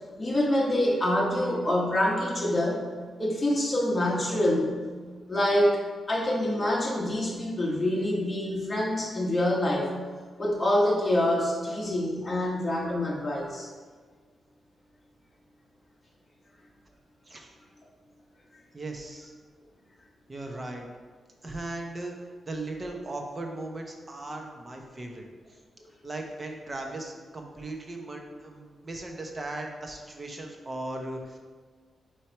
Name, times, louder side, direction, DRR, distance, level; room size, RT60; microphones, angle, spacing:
voice 1, 0.2-2.9 3.2-4.8 5.3-5.8 6.1-9.9 10.4-13.7, left 1 dB, 20° left, -3 dB, 1.3 m, -26 dB
voice 2, 18.7-19.3 20.3-20.9 21.4-22.2 22.5-25.2 26.0-31.4, right 2 dB, 25° right, 2 dB, 0.8 m, -37 dB
4.6 x 4.5 x 4.5 m, 1.5 s
cardioid pair, 115°, 0 cm